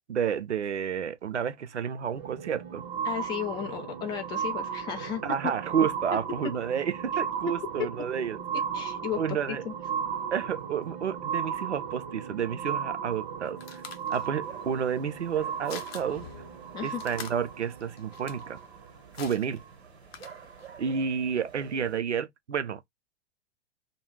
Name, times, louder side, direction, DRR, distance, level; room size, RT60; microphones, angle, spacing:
voice 1, 0.1-2.8 5.2-8.4 9.2-9.6 10.3-13.8 14.1-16.2 16.8-18.6 19.2-19.6 20.8-22.9, right 7 dB, 85° right, 0.5 m, -30 dB
sound 1, 2.0-18.9 19.6-19.7, right 7 dB, 40° right, 0.7 m, -35 dB
voice 2, 3.0-5.2 7.8-7.9 8.7-9.7 16.7-17.0, left 10 dB, 15° left, 0.4 m, -34 dB
sound 2, 13.1-20.8, left 7 dB, 60° left, 0.6 m, -48 dB
sound 3, 14.4-22.0, right 6 dB, 65° right, 1.0 m, -50 dB
2.3 x 2.2 x 3.1 m
figure-of-eight pair, 100°, 34 cm